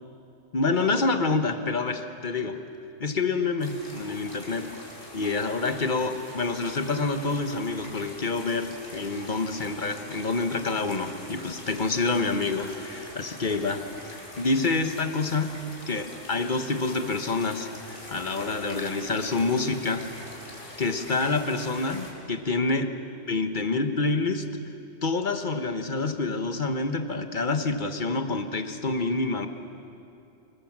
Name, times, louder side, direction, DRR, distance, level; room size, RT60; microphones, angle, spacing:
voice 1, 0.5-2.6 3.0-4.7 5.1-13.8 14.4-15.5 15.9-17.7 18.1-20.0 20.8-22.9 23.3-24.5 25.0-29.5, left 3 dB, 40° left, 7 dB, 1.3 m, -27 dB
sound 1, 3.6-22.1, left 1 dB, 70° left, 4.3 m, -43 dB
27.0 x 20.0 x 7.4 m, 2.7 s
omnidirectional pair, 1.3 m